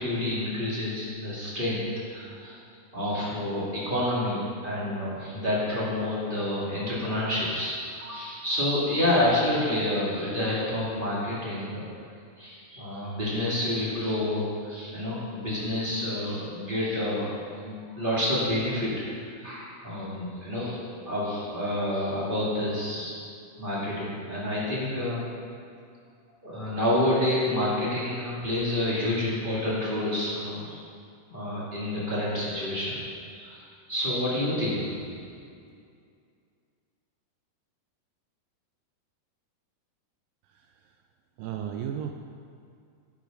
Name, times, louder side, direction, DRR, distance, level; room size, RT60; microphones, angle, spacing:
voice 1, 0.0-2.6 2.9-11.8 12.4-18.9 19.4-20.8 21.0-23.2 23.6-25.2 26.4-30.8 31.3-33.0 33.3-33.6 33.9-35.2, left 1 dB, 15° right, -8 dB, 2.2 m, -28 dB
voice 2, 41.4-42.1, right 9 dB, 85° right, 4 dB, 2.1 m, -33 dB
11.0 x 8.9 x 5.2 m, 2.3 s
omnidirectional pair, 4.5 m